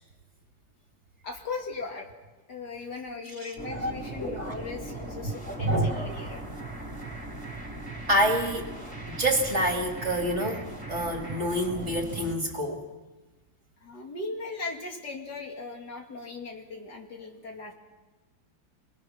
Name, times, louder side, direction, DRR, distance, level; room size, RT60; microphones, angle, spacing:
voice 1, 1.2-2.1 2.5-6.4 13.8-17.7, left 3 dB, 60° left, 2 dB, 3.1 m, -38 dB
sound 1, 3.6-12.3, right 2 dB, 10° right, 4.1 m, -39 dB
voice 2, 4.2-4.5 5.5-6.1 8.1-8.7 9.2-12.8, right 1 dB, 35° right, 3 dB, 2.4 m, -27 dB
27.0 x 19.5 x 6.2 m, 1.2 s
omnidirectional pair, 2.1 m